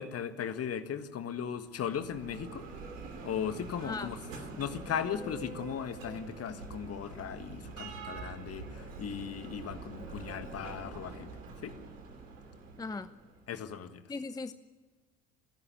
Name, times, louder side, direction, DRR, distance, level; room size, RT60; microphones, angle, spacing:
voice 1, 0.0-2.6 3.2-4.2 4.6-11.3 11.6-11.7 13.5-14.0, left 8 dB, 40° left, 10 dB, 1.8 m, -37 dB
Bell, 1.6-13.5, right 3 dB, 75° right, 3.1 m, -45 dB
voice 2, 12.8-13.1 14.1-14.5, left 3 dB, 10° left, 14 dB, 0.6 m, -38 dB
29.0 x 11.5 x 9.8 m, 1.3 s
figure-of-eight pair, 60°, 39 cm